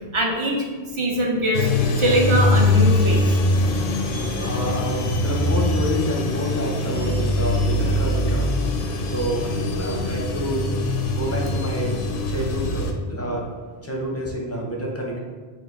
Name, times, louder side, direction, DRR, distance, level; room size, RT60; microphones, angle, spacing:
voice 1, 0.1-0.6 0.9-1.7 2.0-3.4 4.1-4.5, right 1 dB, 40° right, 0 dB, 0.4 m, -22 dB
sound 1, 1.5-12.9, left 2 dB, 60° left, 0.6 m, -22 dB
voice 2, 4.4-8.5 9.0-10.7 11.1-13.4 13.8-15.2, equal, 20° left, -2 dB, 0.5 m, -28 dB
4.4 x 2.4 x 3.9 m, 1.5 s
omnidirectional pair, 1.1 m